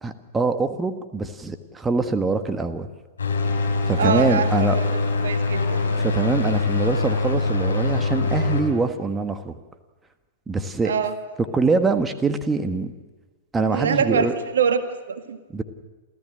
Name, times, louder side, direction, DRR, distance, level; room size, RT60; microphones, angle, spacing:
voice 1, 0.0-2.9 3.9-4.8 6.0-9.5 10.5-10.9 11.5-12.9 13.5-14.3 15.5-15.6, right 4 dB, 15° right, 8 dB, 1.4 m, -24 dB
sound 1, 3.2-8.6, left 3 dB, 85° left, 4.5 m, -23 dB
voice 2, 4.0-4.8 5.2-5.8 10.8-11.1 13.7-15.4, right 6 dB, 75° right, 8 dB, 1.7 m, -24 dB
29.0 x 14.5 x 7.8 m, 1.3 s
hypercardioid pair, 105°, 0 cm